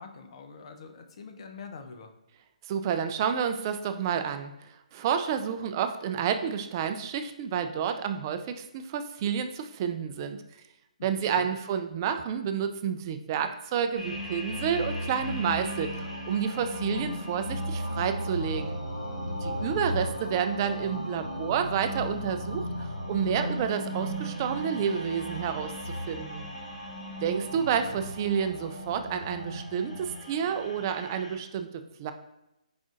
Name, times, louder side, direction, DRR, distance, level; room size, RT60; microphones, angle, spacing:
voice 1, 0.0-2.1 11.0-11.5 19.5-20.0, left 5 dB, 50° left, 6 dB, 0.6 m, -45 dB
voice 2, 2.7-10.4 11.0-18.8 19.4-26.5 27.2-31.7 32.0-32.1, right 7 dB, 30° right, 8 dB, 0.3 m, -30 dB
sound 1, 14.0-31.3, equal, 85° left, 1.6 m, -35 dB
5.1 x 3.6 x 2.5 m, 0.87 s
figure-of-eight pair, 140°, 4 cm